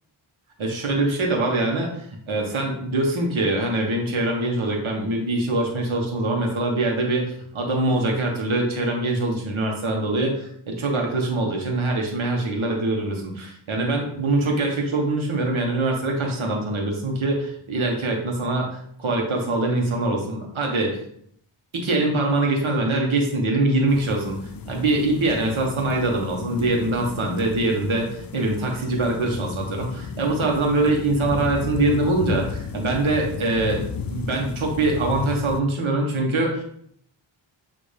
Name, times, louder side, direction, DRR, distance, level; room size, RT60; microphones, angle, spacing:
voice 1, 0.6-21.0 21.7-24.4 24.6-28.1 28.3-33.8 34.1-36.6, right 2 dB, 80° right, 0 dB, 1.7 m, -23 dB
sound 1, 23.9-35.6, left 6 dB, 45° left, 0.6 m, -33 dB
8.9 x 3.2 x 3.5 m, 0.67 s
cardioid pair, 75°, 48 cm